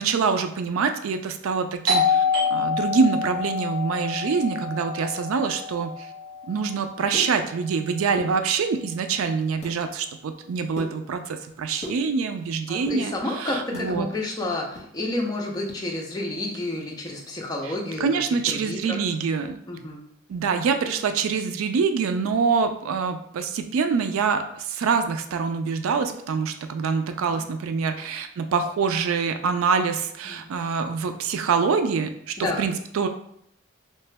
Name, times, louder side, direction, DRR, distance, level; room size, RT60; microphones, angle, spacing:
voice 1, 0.0-2.2 2.5-5.9 6.5-14.1 17.6-17.7 18.0-19.6 20.3-33.1, right 5 dB, 75° right, 8 dB, 0.3 m, -25 dB
Doorbell, 1.9-7.3, left 4 dB, 50° right, 0.7 m, -27 dB
sound 1, 7.1-7.8 8.1-8.9 9.3-9.8 10.2-12.5 12.7-13.9 14.3-15.8 16.1-16.2 16.6-16.8 17.2-17.4, equal, 35° left, 1.3 m, -39 dB
voice 2, 12.7-18.1 18.5-19.0 19.7-20.0 30.2-30.5 32.4-32.7, left 2 dB, 20° left, -1 dB, 0.6 m, -30 dB
3.2 x 2.8 x 3.3 m, 0.70 s
head